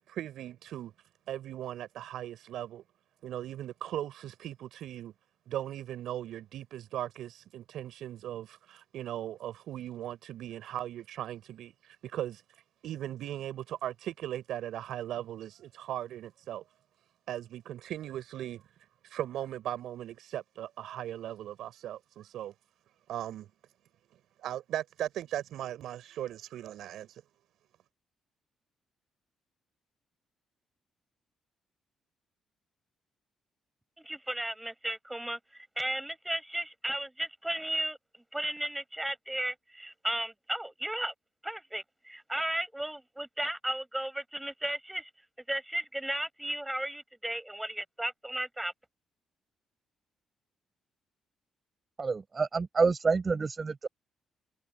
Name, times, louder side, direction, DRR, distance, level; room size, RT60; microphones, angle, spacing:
voice 1, 0.1-0.9 1.3-2.8 3.2-5.1 5.5-12.4 12.8-16.6 17.3-18.6 19.0-22.5 23.1-23.5 24.4-27.2, right 12 dB, 70° right, 4.1 m, -38 dB
voice 2, 34.0-38.0 38.3-41.1 41.4-45.1 45.5-48.7, right 1 dB, 10° right, 6.9 m, -35 dB
voice 3, 52.0-53.9, right 4 dB, 40° right, 7.7 m, -28 dB
hypercardioid pair, 45°, 0 cm